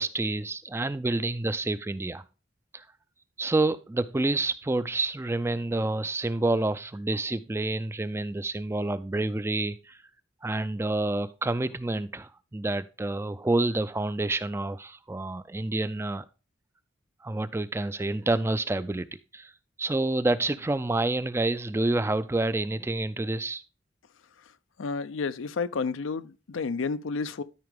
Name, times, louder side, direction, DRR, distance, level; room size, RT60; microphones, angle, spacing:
voice 1, 0.0-2.2 2.7-2.9 3.4-10.0 10.4-16.3 17.2-19.1 19.3-19.5 19.8-23.6, right 2 dB, 15° right, 0.3 m, -28 dB
voice 2, 24.8-27.4, left 4 dB, 85° left, 0.5 m, -31 dB
12.5 x 4.8 x 3.5 m
head